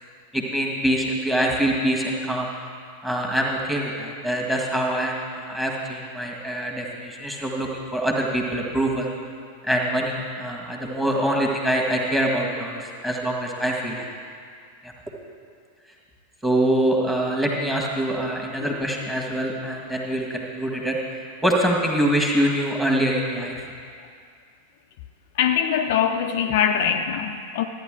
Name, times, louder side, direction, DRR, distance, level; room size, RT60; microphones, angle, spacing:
voice 1, 0.3-2.5 3.0-9.1 9.6-14.1 14.8-14.9 16.4-21.0 21.4-23.7, right 1 dB, 5° right, 0 dB, 1.8 m, -24 dB
voice 2, 25.3-27.7, left 8 dB, 50° left, 5 dB, 0.5 m, -23 dB
13.5 x 9.9 x 3.8 m, 2.2 s
figure-of-eight pair, 90°, 0 cm